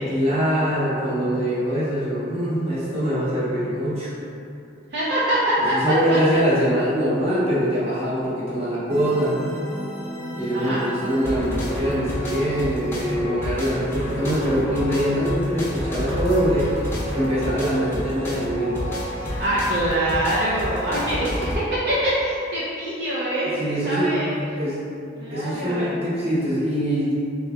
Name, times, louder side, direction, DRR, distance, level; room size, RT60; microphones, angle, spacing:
voice 1, 0.1-4.1 5.7-9.4 10.4-16.8 17.1-18.8 23.5-24.1 24.5-24.8 25.3-27.1, equal, 30° right, -9 dB, 1.0 m, -23 dB
voice 2, 4.9-5.8 6.1-6.2 10.5-10.8 19.2-24.3 25.2-25.9, right 1 dB, 55° right, -9 dB, 0.6 m, -24 dB
sound 1, 8.9-21.6, equal, 10° left, 0.6 m, -30 dB
3.5 x 3.2 x 3.4 m, 2.7 s
head